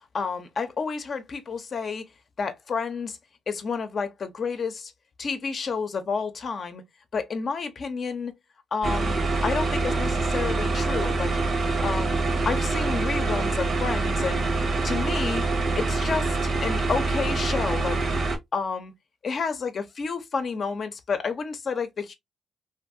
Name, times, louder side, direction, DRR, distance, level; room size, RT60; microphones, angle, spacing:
voice 1, 0.1-2.0 2.4-3.2 3.5-4.9 5.2-6.8 7.1-8.3 8.7-11.3 11.8-12.2 12.4-14.5 14.8-15.5 15.8-18.0 18.5-18.9 19.2-22.1, left 5 dB, 45° left, 0.6 m, -30 dB
sound 1, 8.8-18.4, right 3 dB, 65° right, 1.1 m, -25 dB
2.6 x 2.5 x 2.5 m
cardioid pair, 90°, 0 cm